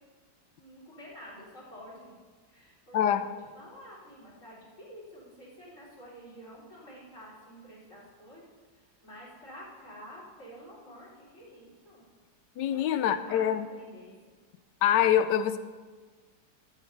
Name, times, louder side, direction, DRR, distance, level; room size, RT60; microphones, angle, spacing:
voice 1, 0.5-2.1 2.5-3.2 3.5-8.4 9.0-12.0 12.7-14.1, equal, 45° left, -10 dB, 4.2 m, -49 dB
voice 2, 2.9-3.3 12.6-13.7 14.8-15.6, left 10 dB, 90° left, 12 dB, 1.3 m, -25 dB
12.5 x 7.3 x 5.6 m, 1.4 s
omnidirectional pair, 1.8 m